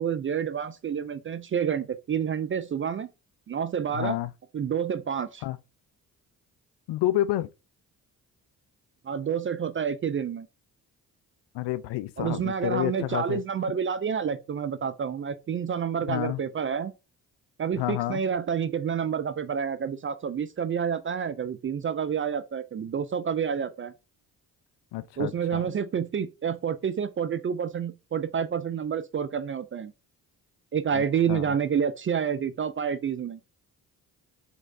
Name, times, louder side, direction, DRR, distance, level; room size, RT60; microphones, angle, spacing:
voice 1, 0.0-3.1 3.5-4.2 4.5-5.4 9.0-10.5 12.2-16.9 17.6-23.9 25.2-29.9 30.7-33.4, right 7 dB, 30° right, 0.4 m, -29 dB
voice 2, 3.9-4.3 5.4-5.6 6.9-7.5 11.5-13.4 16.1-16.4 17.8-18.2 24.9-25.6 30.9-31.0 31.3-31.5, left 14 dB, 60° left, 0.5 m, -29 dB
3.9 x 3.1 x 2.5 m
hypercardioid pair, 40°, 47 cm